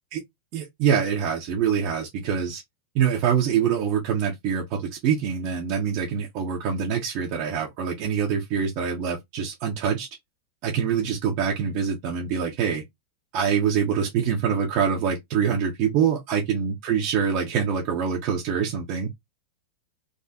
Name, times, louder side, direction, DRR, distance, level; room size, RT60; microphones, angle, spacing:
voice 1, 0.5-2.6 2.9-10.1 10.6-12.8 13.3-19.1, right 7 dB, 45° right, 1.1 m, -25 dB
3.6 x 2.9 x 2.9 m
figure-of-eight pair, 90°, 0 cm